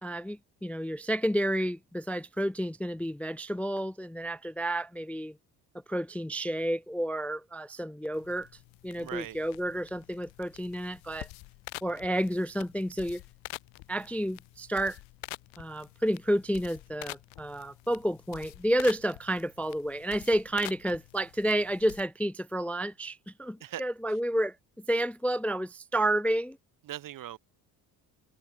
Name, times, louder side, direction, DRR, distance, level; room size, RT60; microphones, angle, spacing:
voice 1, 0.0-5.4 5.9-8.5 8.8-11.3 11.8-13.2 13.9-15.0 15.6-26.6, right 1 dB, 5° left, 0.4 m, -30 dB
sound 1, 8.1-22.0, left 23 dB, 70° left, 1.4 m, -47 dB
voice 2, 9.0-9.4 23.6-23.8 26.8-27.4, right 12 dB, 45° right, 0.7 m, -39 dB
hypercardioid pair, 50°, 48 cm